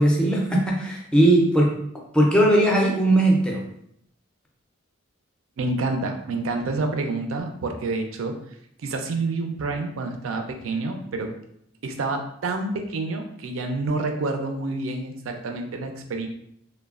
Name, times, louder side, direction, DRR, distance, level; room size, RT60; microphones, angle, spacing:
voice 1, 0.0-1.7 2.1-3.6, right 1 dB, 5° left, -2 dB, 0.4 m, -19 dB
voice 2, 5.6-8.3 8.8-11.3 11.8-16.3, right 3 dB, 80° right, 4 dB, 0.4 m, -28 dB
3.1 x 2.2 x 2.3 m, 0.71 s
head